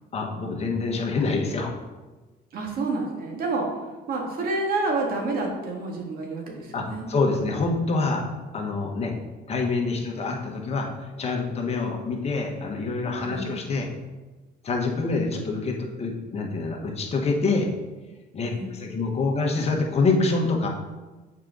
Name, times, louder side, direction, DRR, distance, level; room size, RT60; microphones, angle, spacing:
voice 1, 0.1-1.7 6.7-8.2 8.5-9.1 9.5-10.9 11.2-13.9 14.6-17.7 18.3-20.7, left 3 dB, 40° left, 1 dB, 1.4 m, -26 dB
voice 2, 2.5-3.7 4.1-7.1 13.2-13.6 18.4-18.8, right 3 dB, 60° right, 0 dB, 1.8 m, -29 dB
7.3 x 4.8 x 4.0 m, 1.2 s
cardioid pair, 110°, 17 cm